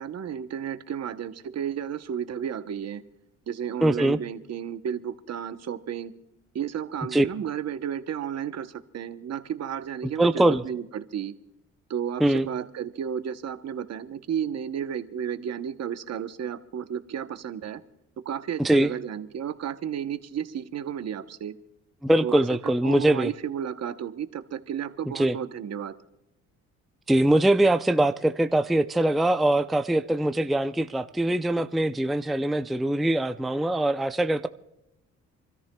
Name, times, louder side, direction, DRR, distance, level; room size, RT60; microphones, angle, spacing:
voice 1, 0.0-3.0 3.5-6.1 6.5-11.3 11.9-17.8 18.2-21.5 22.2-22.4 22.8-25.9, right 8 dB, 55° right, 11 dB, 0.9 m, -32 dB
voice 2, 3.8-4.2 7.1-7.2 10.2-10.6 12.2-12.5 18.6-18.9 22.0-23.3 25.2-25.4 27.1-34.5, right 1 dB, ahead, 9 dB, 0.4 m, -22 dB
29.0 x 13.5 x 2.3 m, 0.89 s
cardioid pair, 90°, 30 cm